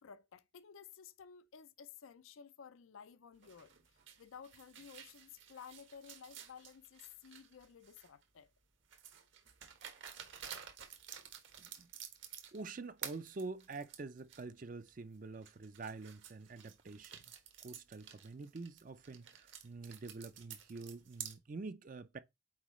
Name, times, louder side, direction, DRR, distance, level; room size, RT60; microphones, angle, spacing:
voice 1, 0.0-3.7 4.2-8.5, left 7 dB, 85° left, 0.5 m, -55 dB
sound 1, 3.4-8.2 8.9-12.7 13.0-14.4 14.9-15.0 15.4-21.3, right 9 dB, 70° right, 1.2 m, -51 dB
voice 2, 11.6-11.9 12.5-17.2 17.6-22.2, right 3 dB, 40° right, 0.4 m, -47 dB
8.7 x 4.1 x 3.1 m
head